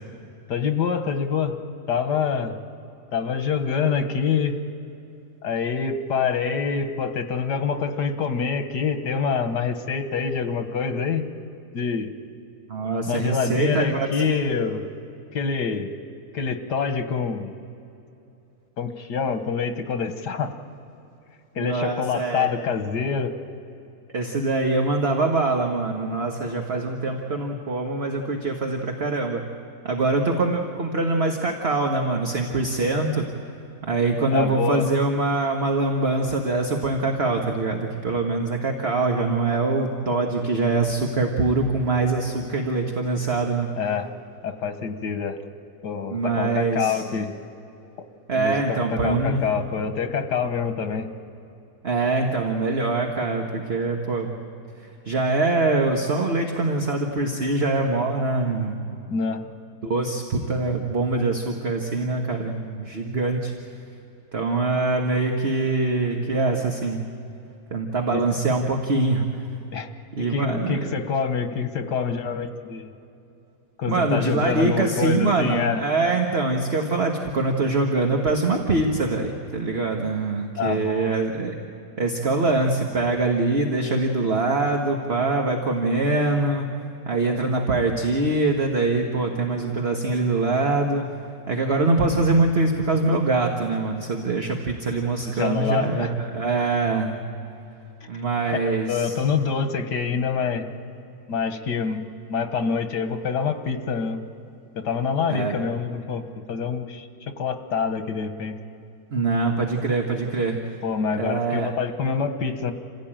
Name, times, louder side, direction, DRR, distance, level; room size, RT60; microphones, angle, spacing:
voice 1, 0.5-1.6 1.9-2.6 3.1-4.6 5.4-11.2 11.7-12.1 13.1-14.8 15.3-15.9 16.3-17.5 18.8-20.5 21.6-23.3 34.3-34.9 43.8-44.1 44.4-45.4 45.8-47.3 48.3-51.1 59.1-59.4 68.1-68.2 69.7-69.9 70.2-72.9 73.8-75.8 80.6-81.2 95.4-96.1 98.6-100.7 101.3-102.0 102.3-104.2 104.8-107.1 107.4-108.5 110.8-112.7, left 6 dB, 85° left, 7 dB, 1.9 m, -26 dB
voice 2, 12.7-14.1 21.6-22.5 24.1-29.4 29.8-33.3 33.8-43.7 46.1-47.0 48.3-49.5 51.8-54.4 55.0-59.0 59.8-63.5 64.3-67.0 67.7-69.2 70.1-70.8 73.9-81.5 82.0-86.7 87.1-91.0 91.5-97.2 98.1-99.2 105.3-105.5 109.1-110.6 111.2-111.7, right 3 dB, 40° right, 2 dB, 1.5 m, -23 dB
27.5 x 16.0 x 8.9 m, 2.8 s
omnidirectional pair, 1.8 m